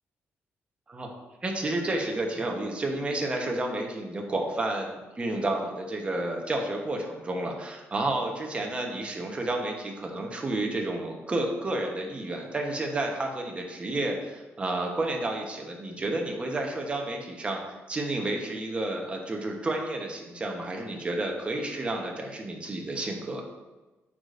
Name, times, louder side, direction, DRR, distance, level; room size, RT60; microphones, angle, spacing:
voice 1, 1.4-23.4, right 2 dB, 25° right, 1 dB, 1.0 m, -31 dB
8.5 x 5.0 x 2.6 m, 1.1 s
cardioid pair, 135°, 5 cm